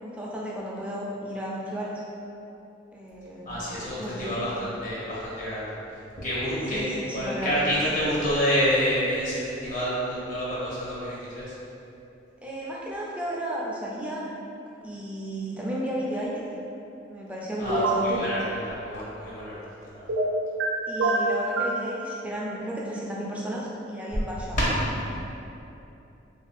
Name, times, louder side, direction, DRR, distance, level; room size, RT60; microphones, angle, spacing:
voice 1, 0.0-2.0 2.9-3.6 4.0-4.4 6.7-7.6 12.4-14.3 14.8-16.4 17.1-18.2 20.9-24.6 25.1-25.2, equal, 5° right, -5 dB, 0.3 m, -33 dB
voice 2, 3.5-5.8 6.2-11.4 17.6-18.4 18.7-19.6 19.9-20.1 24.5-24.7, equal, 40° left, -8 dB, 0.6 m, -28 dB
sound 1, 17.7-18.0 20.1-20.7 21.0-21.8, right 2 dB, 75° right, 0.5 m, -24 dB
2.5 x 2.2 x 3.4 m, 2.8 s
head